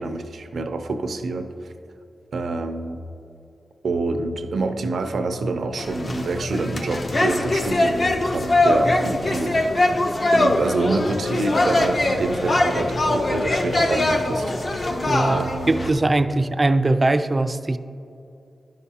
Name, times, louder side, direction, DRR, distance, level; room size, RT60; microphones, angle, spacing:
voice 1, 0.0-1.5 2.3-3.0 3.8-9.6 10.3-14.9 15.3-15.9, right 3 dB, 80° right, 7 dB, 0.5 m, -26 dB
sound 1, 5.8-15.9, left 2 dB, 45° left, 0.6 m, -22 dB
voice 2, 15.0-17.8, right 2 dB, 30° right, 10 dB, 0.3 m, -21 dB
11.5 x 5.7 x 2.8 m, 2.7 s
wide cardioid pair, 85°, 0 cm